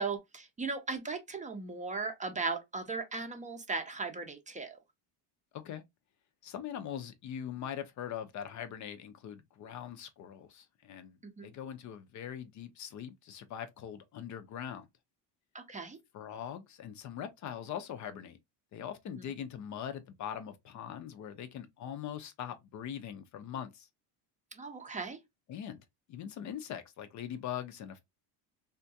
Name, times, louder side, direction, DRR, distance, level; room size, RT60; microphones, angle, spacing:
voice 1, 0.0-4.8 11.2-11.5 15.5-16.0 19.2-19.3 24.5-25.2, right 4 dB, 20° right, 0.6 m, -37 dB
voice 2, 6.4-11.2 11.4-14.9 16.1-18.4 18.7-23.9 25.5-25.8 26.1-28.0, left 9 dB, 45° left, 0.5 m, -42 dB
3.5 x 2.3 x 2.6 m
cardioid pair, 125°, 42 cm